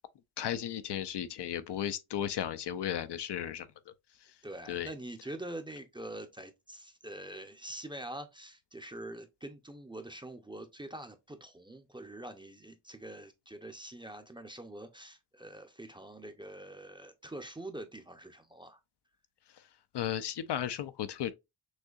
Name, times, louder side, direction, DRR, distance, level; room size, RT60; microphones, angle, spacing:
voice 1, 0.4-3.7 4.7-4.9 19.9-21.3, left 10 dB, 60° left, 0.5 m, -35 dB
voice 2, 4.4-18.8, right 1 dB, 10° right, 0.6 m, -45 dB
6.4 x 2.7 x 2.4 m
cardioid pair, 100°, 48 cm